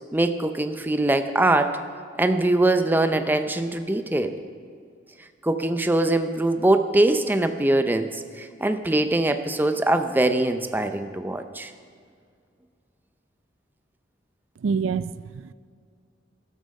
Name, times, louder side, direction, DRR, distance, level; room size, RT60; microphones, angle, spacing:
voice 1, 0.1-1.8 2.2-4.3 5.4-11.7, right 2 dB, 10° right, 8 dB, 0.6 m, -22 dB
voice 2, 14.6-15.5, right 5 dB, 90° right, 16 dB, 0.4 m, -27 dB
13.0 x 13.0 x 5.3 m, 2.2 s
head